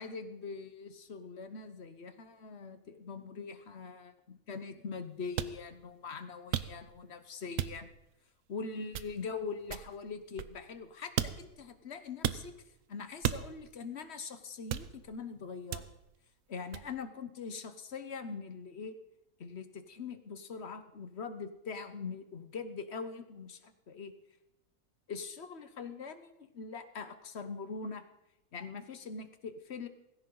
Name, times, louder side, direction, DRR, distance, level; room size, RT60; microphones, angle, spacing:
voice 1, 0.0-7.9 8.5-12.5 12.9-15.9 16.5-18.9 19.4-24.1 25.1-28.1 28.5-29.9, left 5 dB, 50° left, 10 dB, 1.1 m, -42 dB
sound 1, 5.4-5.6 6.5-7.0 7.6-8.0 8.9-9.3 9.7-10.8 11.2-11.6 12.2-12.5 13.2-13.7 14.7-15.2 15.7-16.1 16.7-16.9, right 10 dB, 65° right, 1.0 m, -36 dB
18.0 x 16.0 x 3.9 m, 0.88 s
omnidirectional pair, 1.6 m